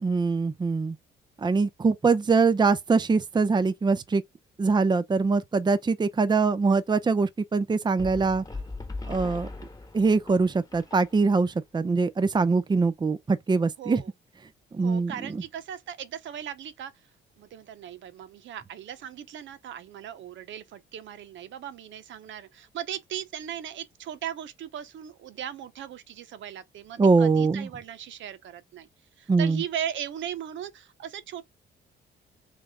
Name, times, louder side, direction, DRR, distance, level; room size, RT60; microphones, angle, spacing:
voice 1, 0.0-1.0 1.4-4.2 4.6-8.4 9.1-9.5 9.9-14.0 14.7-15.4 27.0-27.7 29.3-29.6, right 4 dB, 20° right, 0.6 m, -23 dB
sound 1, 8.0-11.5, left 3 dB, 20° left, 1.2 m, -39 dB
voice 2, 13.8-14.1 14.8-16.9 17.4-28.9 29.2-31.4, right 10 dB, 70° right, 0.8 m, -38 dB
3.4 x 3.3 x 3.7 m
cardioid pair, 90°, 20 cm